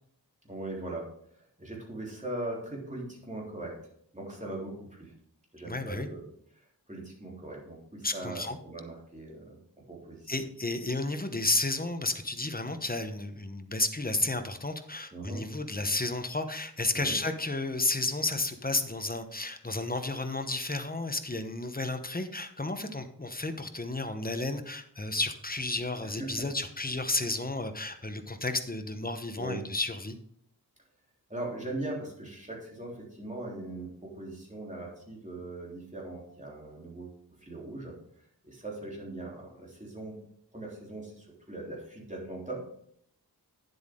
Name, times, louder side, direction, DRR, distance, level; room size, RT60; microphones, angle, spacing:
voice 1, 0.4-1.1 1.3-3.8 4.1-5.1 5.5-6.3 6.5-9.6 9.9-10.3 15.1-15.4 16.9-17.2 26.0-26.5 29.4-29.7 31.3-38.0 38.4-40.2 40.5-42.6, right 2 dB, 20° right, -3 dB, 3.4 m, -40 dB
voice 2, 5.7-6.1 8.0-8.6 10.3-30.2, left 2 dB, 25° left, 8 dB, 1.0 m, -32 dB
9.6 x 7.8 x 3.7 m, 0.68 s
wide cardioid pair, 65°, 39 cm